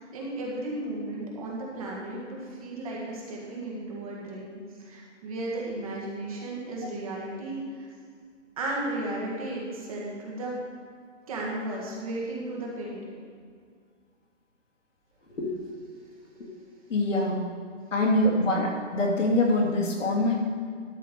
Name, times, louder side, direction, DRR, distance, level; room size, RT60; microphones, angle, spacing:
voice 1, 0.0-7.9 8.6-10.5 11.3-13.2, right 2 dB, 30° right, -3 dB, 1.7 m, -34 dB
voice 2, 16.9-17.4 17.9-20.4, left 1 dB, 75° left, -1 dB, 2.6 m, -24 dB
12.0 x 4.5 x 6.8 m, 2.1 s
hypercardioid pair, 175°, 37 cm